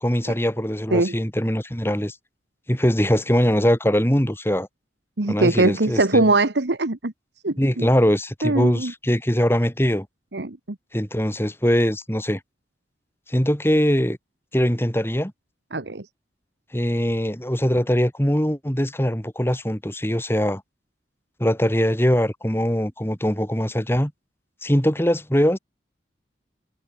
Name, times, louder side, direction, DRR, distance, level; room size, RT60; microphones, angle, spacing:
voice 1, 0.0-2.1 2.7-4.7 5.3-6.3 7.6-10.1 10.9-12.4 13.3-14.2 14.5-15.3 16.7-20.6 21.4-24.1 24.6-25.6, equal, 15° left, 3.4 m, -22 dB
voice 2, 5.2-7.1 7.4-7.9 8.4-8.9 10.3-10.6 15.7-16.0, right 2 dB, 80° right, 1.5 m, -21 dB
head